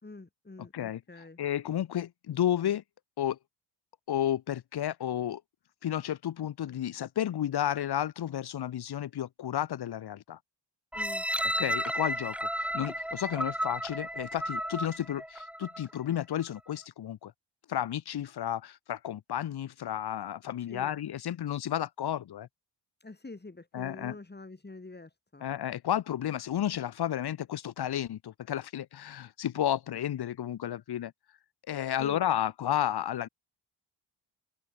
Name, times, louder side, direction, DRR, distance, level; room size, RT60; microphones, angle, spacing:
voice 1, 0.0-1.4 10.9-11.3 20.5-21.0 23.0-25.4 32.0-32.3, left 3 dB, 20° left, 5.6 m, -46 dB
voice 2, 1.4-2.8 3.2-3.4 4.1-5.4 5.8-10.4 11.6-17.3 17.7-22.5 23.7-24.2 25.4-31.1 31.7-33.3, left 11 dB, 50° left, 1.1 m, -32 dB
sound 1, 10.9-15.9 16.4-16.5, equal, ahead, 2.6 m, -33 dB
supercardioid pair, 65°, 48 cm